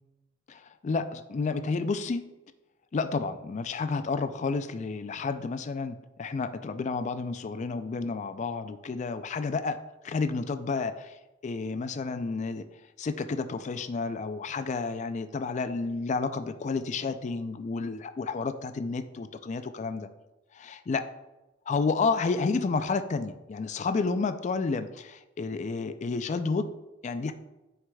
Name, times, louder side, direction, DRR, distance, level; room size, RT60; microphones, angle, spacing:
voice 1, 0.5-2.2 2.9-9.8 10.0-11.1 11.4-12.6 13.0-20.1 20.5-21.0 21.7-26.7 27.0-27.3, left 4 dB, 35° left, 10 dB, 0.3 m, -30 dB
9.5 x 4.7 x 2.3 m, 1.0 s
head